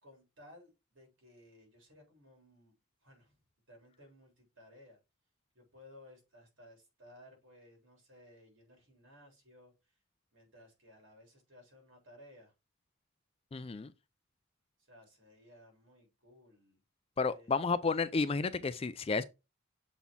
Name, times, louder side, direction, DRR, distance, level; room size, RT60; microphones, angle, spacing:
voice 1, 0.0-2.7 3.0-3.4 3.7-5.0 5.5-9.7 10.3-12.5 14.8-16.8 17.1-17.6, left 1 dB, 60° right, 3.4 m, -59 dB
voice 2, 13.5-13.9 17.2-19.2, left 4 dB, 25° left, 0.3 m, -31 dB
7.0 x 4.2 x 3.6 m
head